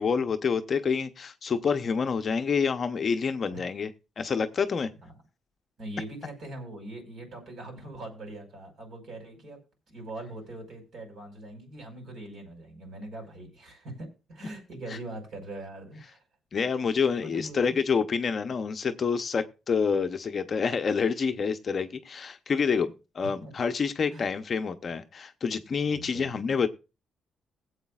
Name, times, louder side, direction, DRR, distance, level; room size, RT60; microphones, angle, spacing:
voice 1, 0.0-3.9 4.2-4.9 16.5-26.7, left 5 dB, 35° left, 0.7 m, -27 dB
voice 2, 5.8-9.6 9.9-16.2 17.2-17.6 23.4-23.5 24.1-24.3 25.9-26.3, right 1 dB, 55° right, 5.1 m, -42 dB
21.0 x 8.0 x 2.4 m
cardioid pair, 155°, 0 cm